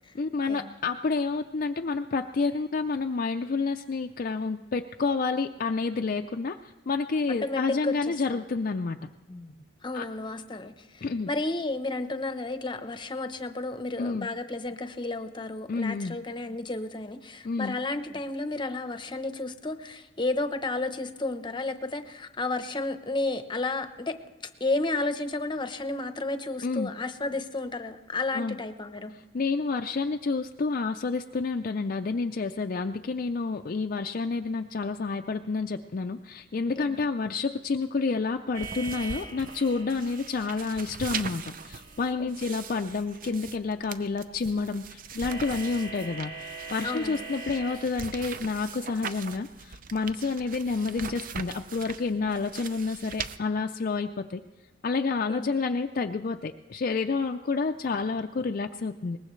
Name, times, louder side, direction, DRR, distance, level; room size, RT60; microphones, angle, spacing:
voice 1, 0.1-9.1 9.9-10.1 11.0-11.3 14.0-14.3 15.7-16.2 17.4-17.8 26.6-26.9 28.3-28.6 29.1-54.4 54.8-59.2, left 4 dB, 45° left, 5 dB, 0.4 m, -29 dB
voice 2, 7.4-8.4 9.3-9.5 9.8-24.1 24.6-29.1 36.8-37.0 42.2-42.5 46.8-47.3 55.3-55.5, left 2 dB, 25° left, 9 dB, 0.8 m, -32 dB
sound 1, 38.5-42.2 45.2-47.8, right 3 dB, 75° right, 4.3 m, -42 dB
sound 2, 38.6-53.4, right 6 dB, 45° right, 0.6 m, -41 dB
22.0 x 19.5 x 3.2 m, 1.2 s
head